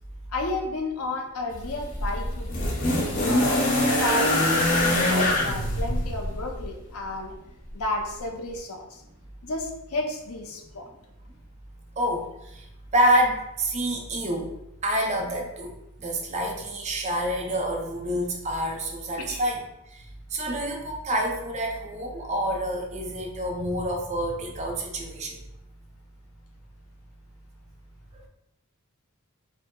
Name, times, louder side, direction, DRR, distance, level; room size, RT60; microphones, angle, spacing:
voice 1, 0.3-2.7 3.3-4.9 5.1-7.4 7.7-9.0 9.4-10.8 19.2-19.4, left 2 dB, 75° left, 3 dB, 0.6 m, -32 dB
sound 1, 1.5-6.7 7.8-7.9, left 1 dB, 35° left, 0.7 m, -24 dB
voice 2, 12.0-12.7 12.9-14.5 14.8-19.6 20.3-25.4, equal, 30° right, 0 dB, 0.5 m, -27 dB
4.4 x 2.0 x 3.7 m, 0.88 s
head